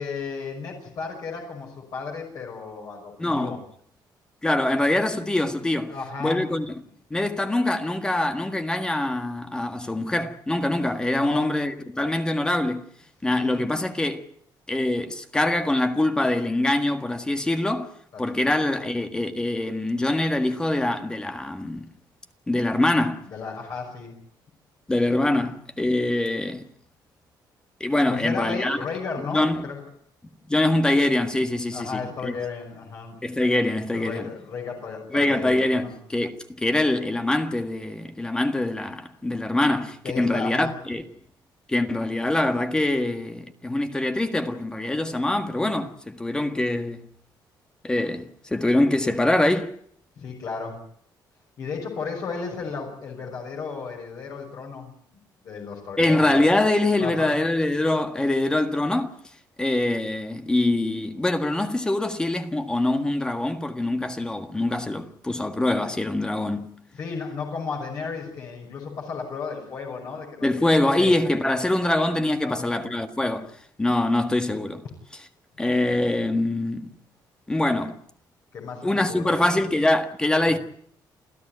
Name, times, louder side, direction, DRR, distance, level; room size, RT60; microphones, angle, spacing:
voice 1, 0.0-3.6 5.9-6.6 11.1-11.6 13.3-13.7 18.1-18.6 23.3-24.2 28.1-29.8 31.7-33.2 33.9-36.0 40.0-40.8 50.2-50.8 51.6-55.0 55.4-56.4 57.0-57.4 66.9-70.5 70.8-71.2 72.4-72.8 78.5-79.7 80.4-80.6, left 5 dB, 50° left, 6.0 m, -34 dB
voice 2, 3.2-3.6 4.4-5.9 6.2-6.7 7.1-12.8 13.2-14.2 14.7-17.9 18.2-21.9 22.5-23.3 24.9-26.6 27.8-28.8 29.3-29.6 30.5-32.3 33.2-34.3 35.1-41.0 41.7-47.0 47.8-49.7 56.0-59.1 59.6-66.7 70.4-73.5 73.8-74.8 75.6-76.9 77.5-78.0 78.8-80.6, left 1 dB, 10° left, 1.6 m, -24 dB
28.5 x 15.0 x 9.4 m
cardioid pair, 170°, 8 cm